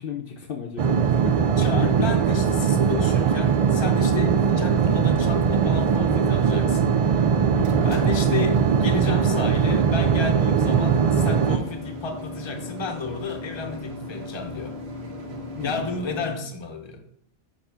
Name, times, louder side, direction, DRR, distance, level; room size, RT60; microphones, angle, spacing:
voice 1, 0.0-1.4 1.8-1.9 7.5-8.0 15.6-15.9, left 7 dB, 60° left, -1 dB, 0.9 m, -34 dB
sound 1, 0.8-11.6, right 6 dB, 55° right, 0.4 m, -20 dB
voice 2, 1.6-7.4 7.8-14.8 15.6-17.0, left 4 dB, 30° left, 3 dB, 0.8 m, -32 dB
sound 2, 7.4-16.3, left 1 dB, 75° right, 1.3 m, -37 dB
6.8 x 2.9 x 5.6 m, 0.68 s
omnidirectional pair, 1.1 m